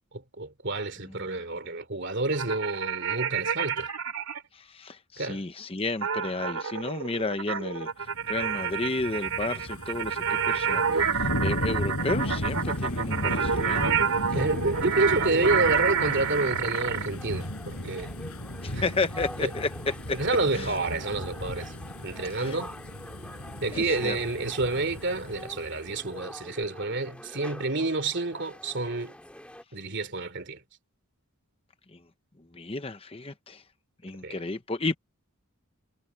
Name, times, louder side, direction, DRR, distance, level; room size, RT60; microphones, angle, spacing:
voice 1, 0.1-3.9 5.2-5.4 14.3-18.1 18.7-18.8 19.4-19.5 20.2-21.7 22.0-22.7 23.6-29.2 29.7-30.6 34.2-34.4, right 2 dB, 50° right, 2.9 m, -29 dB
sound 1, 2.3-4.4 6.0-17.1, right 7 dB, 80° right, 2.5 m, -29 dB
voice 2, 4.5-14.0 18.6-20.2 20.5-20.8 22.3-22.6 23.7-24.2 31.9-32.1 32.4-33.6 34.0-34.9, left 3 dB, 25° left, 0.8 m, -32 dB
sound 2, 8.1-26.2 26.6-26.7, left 1 dB, 80° left, 6.0 m, -35 dB
sound 3, 12.0-29.6, left 1 dB, 5° left, 2.0 m, -46 dB
head